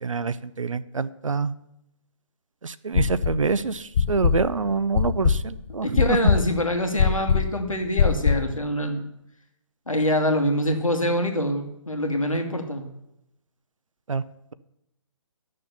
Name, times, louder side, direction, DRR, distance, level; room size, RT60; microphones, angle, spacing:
voice 1, 0.0-1.5 2.6-3.8 4.1-6.0 14.1-14.2, right 4 dB, 75° right, 16 dB, 0.7 m, -26 dB
sound 1, 2.9-3.5 3.9-8.6, left 7 dB, 25° left, 0.3 m, -22 dB
voice 2, 5.8-9.1 9.9-12.9, equal, 90° left, 5 dB, 2.0 m, -25 dB
11.5 x 6.6 x 6.9 m, 0.84 s
figure-of-eight pair, 140°, 17 cm